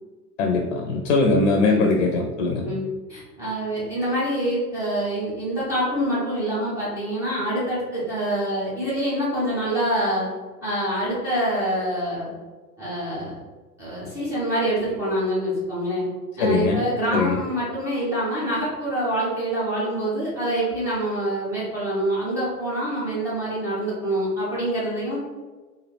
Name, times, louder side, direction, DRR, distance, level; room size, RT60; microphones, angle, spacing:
voice 1, 0.4-2.7 16.4-16.8 17.1-17.4, left 3 dB, 55° left, 1 dB, 0.5 m, -21 dB
voice 2, 2.6-10.3 10.6-12.3 12.8-13.3 13.8-16.0 16.4-25.2, right 1 dB, 5° right, -9 dB, 0.3 m, -26 dB
3.1 x 2.3 x 3.1 m, 1.3 s
figure-of-eight pair, 95°, 46 cm